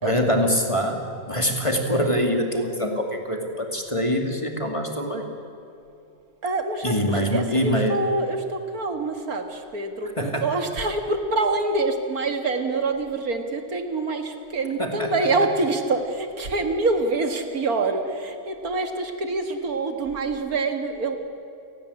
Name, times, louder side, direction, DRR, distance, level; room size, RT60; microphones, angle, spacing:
voice 1, 0.0-5.3 6.8-8.0 10.2-10.5 14.8-15.1, equal, 20° left, 3 dB, 2.4 m, -24 dB
voice 2, 6.4-21.2, right 3 dB, 65° right, 6 dB, 2.3 m, -26 dB
29.5 x 18.0 x 9.9 m, 2.6 s
omnidirectional pair, 1.7 m